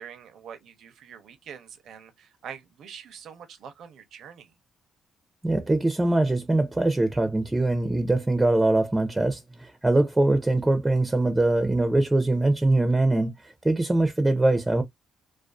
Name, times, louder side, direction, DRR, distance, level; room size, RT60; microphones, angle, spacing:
voice 1, 0.0-4.6, right 7 dB, 70° right, 0.6 m, -44 dB
voice 2, 5.4-14.8, right 2 dB, 15° right, 0.4 m, -23 dB
2.4 x 2.3 x 2.2 m
cardioid pair, 90°, 0 cm